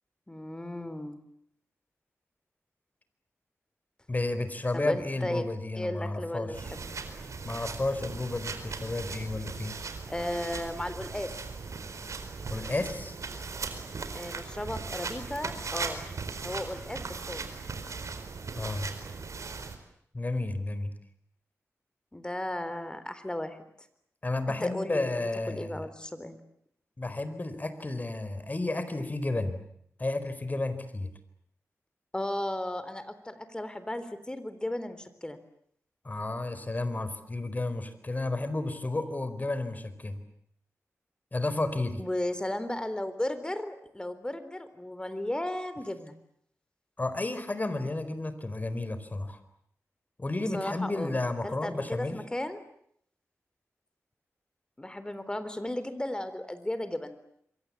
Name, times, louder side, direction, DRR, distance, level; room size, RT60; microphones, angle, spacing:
voice 1, 0.3-1.2 4.7-5.4 5.8-7.0 10.1-11.4 14.1-16.0 16.4-17.5 22.1-23.6 24.5-26.4 32.1-35.4 42.0-46.2 50.5-51.1 51.4-52.6 54.8-57.2, left 1 dB, 15° left, 12 dB, 3.8 m, -35 dB
voice 2, 4.1-6.6 7.4-9.8 12.5-13.2 18.6-18.9 20.1-20.9 24.2-25.8 27.0-29.6 30.0-31.1 36.0-40.2 41.3-42.0 47.0-49.4 50.2-52.2, left 2 dB, 30° left, 11 dB, 4.4 m, -32 dB
sound 1, 6.5-19.8, right 4 dB, 70° right, 4.5 m, -38 dB
27.5 x 23.5 x 8.5 m, 0.70 s
wide cardioid pair, 75°, 5 cm